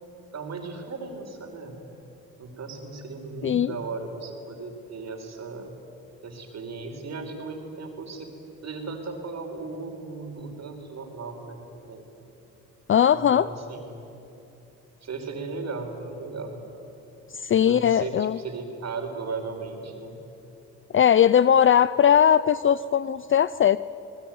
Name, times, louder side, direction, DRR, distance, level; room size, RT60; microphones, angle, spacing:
voice 1, 0.3-1.7 2.4-5.7 6.2-8.3 8.6-12.1 13.1-14.0 15.0-16.6 17.6-20.2, right 4 dB, 55° right, 3 dB, 5.0 m, -36 dB
voice 2, 3.4-3.7 12.9-13.5 17.3-18.4 20.9-23.8, left 9 dB, 40° left, 16 dB, 0.5 m, -19 dB
27.0 x 20.0 x 9.5 m, 3.0 s
supercardioid pair, 70°, 31 cm